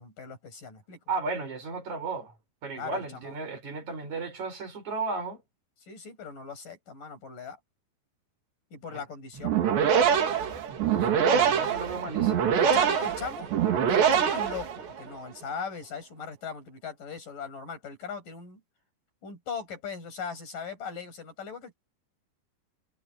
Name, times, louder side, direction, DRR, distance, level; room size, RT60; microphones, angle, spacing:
voice 1, 0.0-1.0 2.8-3.4 5.8-7.6 8.7-9.7 12.6-13.5 13.9-18.6 19.2-21.7, left 5 dB, 50° left, 9.7 m, -39 dB
voice 2, 1.1-2.3 2.6-5.4 10.9-12.8, right 3 dB, 40° right, 7.5 m, -34 dB
sound 1, 9.4-15.1, right 8 dB, 75° right, 5.2 m, -24 dB
omnidirectional pair, 5.0 m